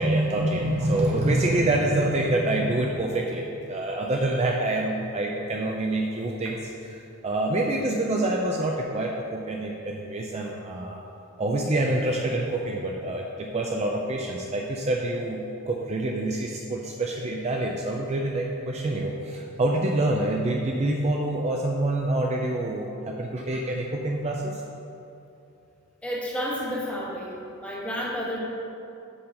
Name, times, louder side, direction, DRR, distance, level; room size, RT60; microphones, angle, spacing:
voice 1, 0.0-11.0 11.4-15.4 15.7-24.6, right 1 dB, 30° right, 0 dB, 0.4 m, -26 dB
voice 2, 26.0-28.4, equal, 5° left, -5 dB, 1.1 m, -31 dB
6.9 x 3.9 x 5.3 m, 2.8 s
head